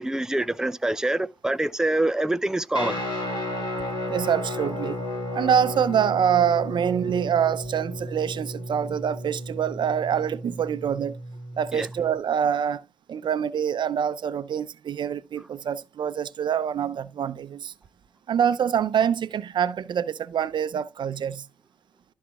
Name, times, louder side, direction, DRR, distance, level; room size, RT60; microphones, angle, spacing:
voice 1, 0.0-3.0 11.7-11.9, right 1 dB, 5° right, 0.6 m, -25 dB
Guitar, 2.7-12.1, left 1 dB, 50° left, 5.5 m, -33 dB
voice 2, 4.1-5.0 5.3-11.2 11.6-12.8 13.1-17.7 18.3-21.5, right 8 dB, 50° right, 0.6 m, -25 dB
13.5 x 5.8 x 2.4 m
hypercardioid pair, 45°, 10 cm